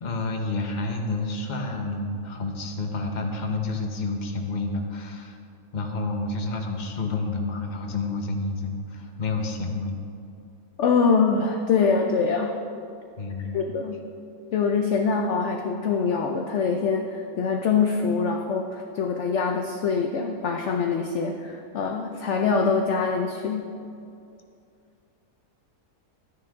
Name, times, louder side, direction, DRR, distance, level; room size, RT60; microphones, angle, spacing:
voice 1, 0.0-5.4 5.7-10.0 13.2-13.6, left 3 dB, 35° left, 3 dB, 1.0 m, -29 dB
voice 2, 10.8-12.6 13.5-14.0 14.5-23.7, left 5 dB, 60° left, 3 dB, 0.9 m, -24 dB
13.0 x 9.7 x 3.6 m, 2.5 s
omnidirectional pair, 1.6 m